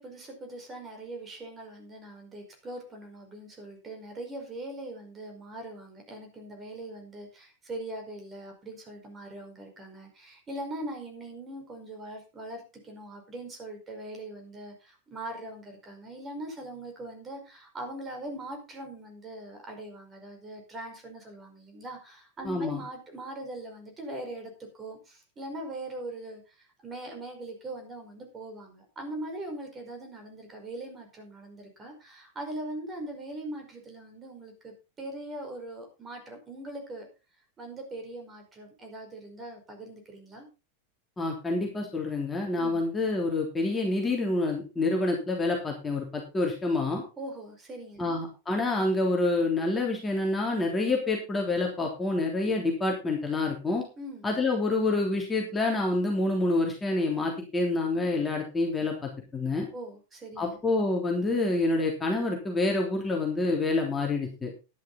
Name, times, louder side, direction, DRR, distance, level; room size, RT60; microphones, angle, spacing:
voice 1, 0.0-37.1 37.6-40.5 42.6-42.8 47.2-48.2 54.0-54.3 59.7-60.6, right 1 dB, 20° right, 3 dB, 5.1 m, -41 dB
voice 2, 22.4-22.8 41.2-47.0 48.0-53.8 54.2-59.7 60.4-64.5, left 2 dB, 15° left, 0 dB, 3.3 m, -27 dB
11.5 x 11.0 x 4.1 m, 0.29 s
figure-of-eight pair, 90°, 0 cm